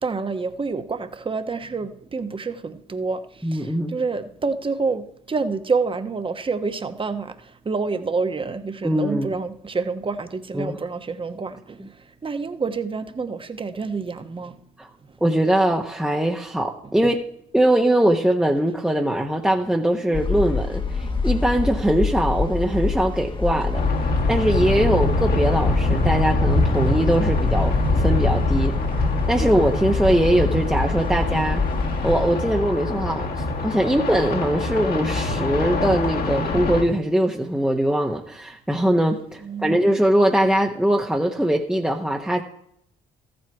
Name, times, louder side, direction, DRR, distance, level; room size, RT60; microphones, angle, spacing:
voice 1, 0.0-14.6 16.8-17.1 20.1-20.2 39.4-39.7, right 4 dB, 25° right, 9 dB, 1.1 m, -28 dB
voice 2, 3.4-4.0 8.8-9.3 10.5-10.8 14.8-14.9 15.2-17.2 17.5-23.8 24.3-28.7 29.3-31.6 32.0-42.4, right 1 dB, 5° right, 1 dB, 1.0 m, -21 dB
sound 1, 20.1-32.4, left 4 dB, 25° left, 1.2 m, -26 dB
sound 2, 23.7-36.8, left 2 dB, 55° left, 1.9 m, -24 dB
14.0 x 7.9 x 4.7 m, 0.73 s
hypercardioid pair, 55°, 19 cm